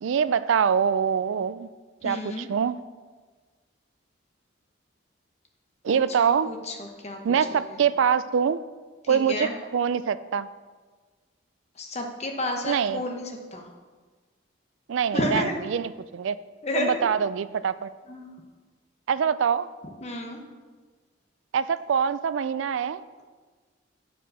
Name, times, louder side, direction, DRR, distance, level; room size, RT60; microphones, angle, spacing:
voice 1, 0.0-1.7 2.0-2.7 5.8-6.5 7.2-8.6 9.1-10.5 12.7-13.0 14.9-15.4 15.7-16.4 16.8-17.9 19.1-19.7 21.5-23.0, right 7 dB, 75° right, 15 dB, 0.3 m, -24 dB
voice 2, 2.0-2.5 5.9-7.4 7.6-7.8 9.0-9.5 11.8-13.7 15.1-15.6 16.6-17.0 18.1-18.3 20.0-20.4, left 1 dB, 35° left, 2 dB, 1.0 m, -31 dB
8.9 x 5.0 x 6.1 m, 1.4 s
head